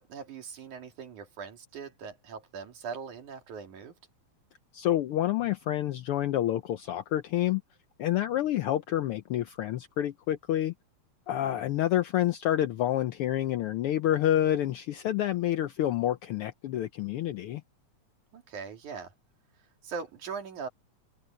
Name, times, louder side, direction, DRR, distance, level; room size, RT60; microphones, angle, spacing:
voice 1, 0.0-4.0 11.4-11.7 18.3-19.1 19.8-20.7, right 5 dB, 90° right, 4.2 m, -41 dB
voice 2, 4.7-7.6 8.0-10.7 11.3-17.6, left 12 dB, 85° left, 1.2 m, -28 dB
omnidirectional pair, 3.3 m